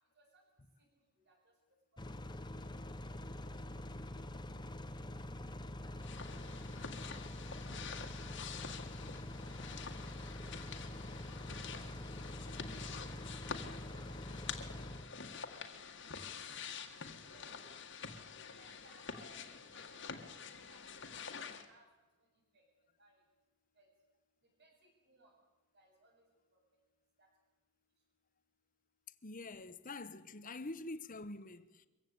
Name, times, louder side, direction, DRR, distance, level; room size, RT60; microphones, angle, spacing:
sound 1, 2.0-15.1, left 1 dB, 20° left, 1.0 m, -45 dB
voice 1, 3.1-3.4 4.2-4.8 5.4-6.6 6.9-7.3 7.6-7.7 8.0-8.2 9.5-10.2 10.6-10.9 11.4-11.8 12.1-12.4 13.5-14.5 15.4-15.6 16.0-16.1 17.3-17.5 18.6-20.2 20.7-20.8 21.3-21.9 22.5-22.6 23.0-23.2 23.8-23.9 24.4-25.3 25.7-26.2 26.5-26.8 27.2-27.3, right 2 dB, 50° right, 7.4 m, -66 dB
sound 2, 6.0-21.7, left 6 dB, 55° left, 1.9 m, -47 dB
voice 2, 29.2-31.9, left 2 dB, 40° left, 1.0 m, -46 dB
24.0 x 15.5 x 8.6 m
head